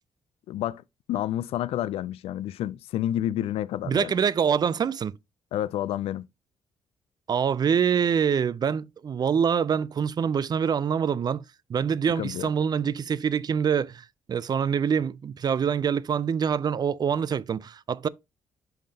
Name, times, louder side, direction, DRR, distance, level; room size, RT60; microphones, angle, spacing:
voice 1, 0.5-0.8 1.1-4.1 5.5-6.3 12.2-12.5, left 12 dB, 80° left, 0.4 m, -29 dB
voice 2, 3.8-5.2 7.3-11.4 11.7-18.1, right 7 dB, 45° right, 0.4 m, -25 dB
10.0 x 3.7 x 2.8 m
cardioid pair, 80°, 10 cm